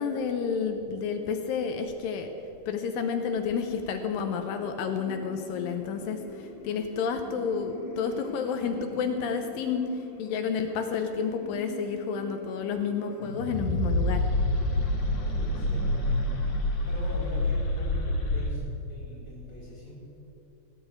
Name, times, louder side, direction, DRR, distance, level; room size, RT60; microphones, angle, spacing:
voice 1, 0.0-2.3 2.7-9.9 10.2-14.2, left 6 dB, 80° left, 6 dB, 2.5 m, -30 dB
sound 1, 3.4-18.5, left 1 dB, 60° left, 3.1 m, -31 dB
voice 2, 15.3-16.1 16.9-19.9, equal, 20° left, -4 dB, 3.9 m, -42 dB
18.0 x 6.2 x 9.0 m, 2.9 s
omnidirectional pair, 4.0 m